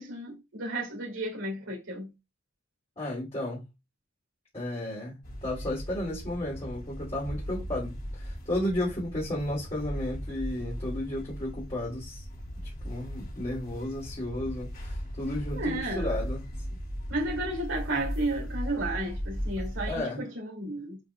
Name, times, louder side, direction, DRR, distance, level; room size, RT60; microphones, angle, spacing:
voice 1, 0.0-2.1 15.5-16.2 17.1-21.0, right 1 dB, 85° right, 2.5 m, -33 dB
voice 2, 3.0-3.6 4.5-12.2 12.8-16.5 19.9-20.2, left 1 dB, 30° left, 2.9 m, -33 dB
sound 1, 5.2-20.0, equal, 50° left, 3.8 m, -37 dB
8.6 x 5.5 x 2.3 m
head